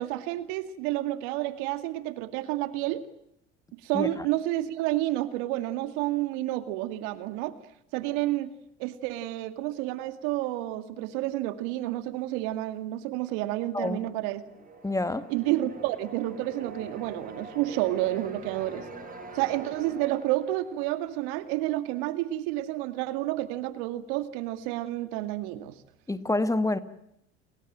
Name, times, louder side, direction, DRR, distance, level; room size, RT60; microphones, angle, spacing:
voice 1, 0.0-3.0 3.8-7.6 7.9-8.5 8.8-14.4 15.3-18.9 19.3-25.8, right 15 dB, 70° right, 2.3 m, -30 dB
voice 2, 3.9-4.3 13.7-14.0 14.8-15.3 26.1-26.8, left 2 dB, 10° left, 1.8 m, -27 dB
sound 1, 14.0-21.8, right 3 dB, 25° right, 6.7 m, -44 dB
29.5 x 23.0 x 7.6 m
hypercardioid pair, 75°, 32 cm